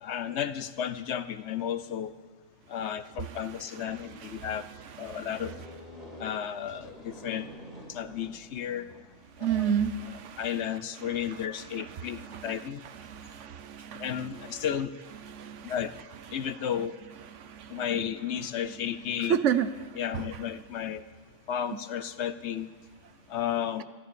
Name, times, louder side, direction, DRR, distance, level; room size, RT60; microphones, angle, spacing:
voice 1, 0.0-2.1 2.7-4.7 5.0-5.5 6.2-7.5 7.9-8.9 9.5-9.7 10.4-12.8 14.0-14.9 15.6-15.9 16.3-17.0 17.7-19.4 20.0-21.0 21.5-22.7 23.3-23.8, left 9 dB, 65° left, 13 dB, 0.9 m, -33 dB
voice 2, 3.8-4.6 5.0-5.3 9.4-10.5 11.7-12.6 13.0-14.5 15.3-15.7 17.3-17.8 19.3-19.7 20.1-20.3, right 8 dB, 70° right, 12 dB, 1.0 m, -31 dB
sound 1, 5.3-9.4, equal, 35° right, 3.0 m, -47 dB
14.0 x 13.5 x 6.9 m, 1.4 s
omnidirectional pair, 1.3 m